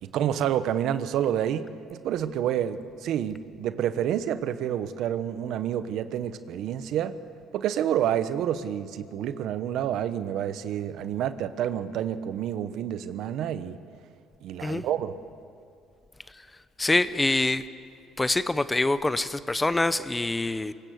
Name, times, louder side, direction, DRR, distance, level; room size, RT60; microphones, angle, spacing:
voice 1, 0.0-7.2 7.5-13.8 14.4-15.1, right 10 dB, 70° right, 12 dB, 1.1 m, -28 dB
voice 2, 16.8-17.7 18.2-20.7, left 2 dB, 15° left, 14 dB, 0.7 m, -25 dB
24.5 x 21.0 x 8.0 m, 2.5 s
cardioid pair, 120°, 0 cm